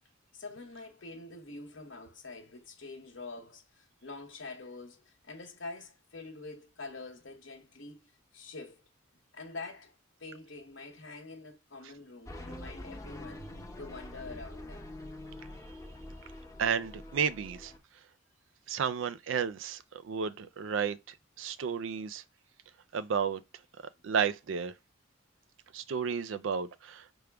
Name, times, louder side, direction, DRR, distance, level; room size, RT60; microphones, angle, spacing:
voice 1, 0.3-8.0 8.3-8.8 9.3-9.9 10.2-13.5 13.8-14.9, left 3 dB, 70° left, 0.9 m, -46 dB
sound 1, 12.3-17.8, left 1 dB, 15° left, 0.6 m, -45 dB
voice 2, 16.6-17.7 18.7-22.2 22.9-23.4 24.0-24.7 25.7-27.1, right 6 dB, 70° right, 0.4 m, -32 dB
4.8 x 2.0 x 3.4 m
head